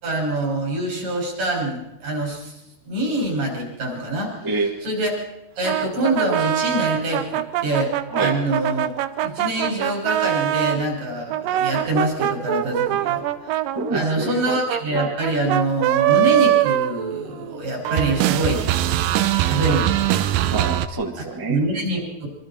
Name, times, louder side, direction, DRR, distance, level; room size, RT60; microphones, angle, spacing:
voice 1, 0.0-2.5 2.9-4.3 4.8-5.2 5.6-8.9 9.2-13.5 13.9-18.6 19.5-20.2 21.5-22.3, right 1 dB, 60° right, -1 dB, 7.7 m, -25 dB
voice 2, 4.4-4.7 8.1-8.3 13.7-14.4 20.5-21.6, right 3 dB, 15° right, 2 dB, 0.9 m, -26 dB
sound 1, 5.6-10.8 11.3-17.6 17.8-20.9, right 13 dB, 75° right, 2.3 m, -22 dB
26.5 x 24.5 x 4.4 m, 0.93 s
omnidirectional pair, 4.4 m